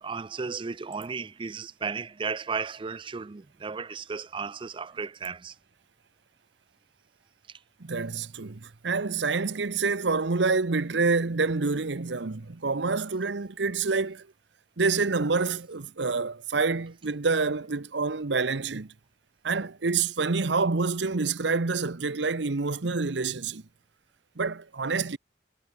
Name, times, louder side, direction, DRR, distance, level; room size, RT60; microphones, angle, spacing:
voice 1, 0.0-5.6, right 5 dB, 25° right, 0.4 m, -34 dB
voice 2, 7.8-14.3 14.8-18.9 19.4-23.6 24.4-25.2, right 4 dB, 70° right, 0.9 m, -27 dB
head